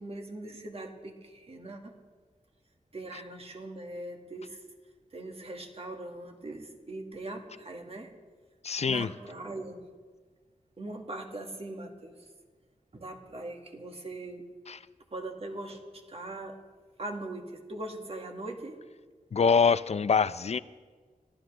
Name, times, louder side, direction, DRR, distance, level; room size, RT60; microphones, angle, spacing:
voice 1, 0.0-2.0 2.9-4.6 5.1-8.2 8.8-9.9 10.8-12.3 12.9-14.5 15.1-16.6 17.0-18.9, right 2 dB, 45° right, 2 dB, 1.9 m, -41 dB
voice 2, 8.6-9.1 14.7-14.8 19.3-20.6, left 5 dB, 50° left, 15 dB, 0.5 m, -24 dB
25.0 x 15.5 x 3.3 m, 1.5 s
wide cardioid pair, 115°, 14 cm